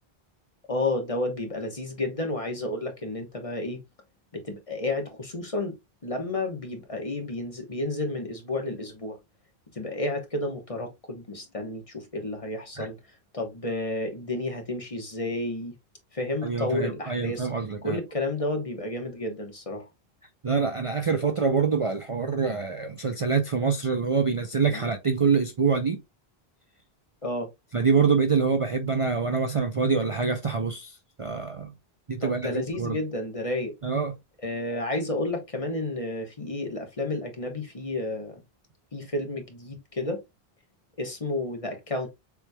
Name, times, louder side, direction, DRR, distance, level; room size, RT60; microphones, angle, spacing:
voice 1, 0.7-3.8 4.3-5.8 6.0-9.2 9.7-13.0 13.3-15.7 16.1-17.5 17.8-19.9 24.7-24.9 27.2-27.5 32.2-33.7 34.4-38.4 38.9-40.2 41.0-42.1, left 2 dB, 35° left, 1.2 m, -31 dB
voice 2, 16.4-18.0 20.4-26.0 27.7-30.9 31.2-31.7 32.1-32.5 32.8-33.0 33.8-34.1, right 5 dB, 40° right, 0.6 m, -25 dB
6.9 x 3.2 x 2.2 m
omnidirectional pair, 1.0 m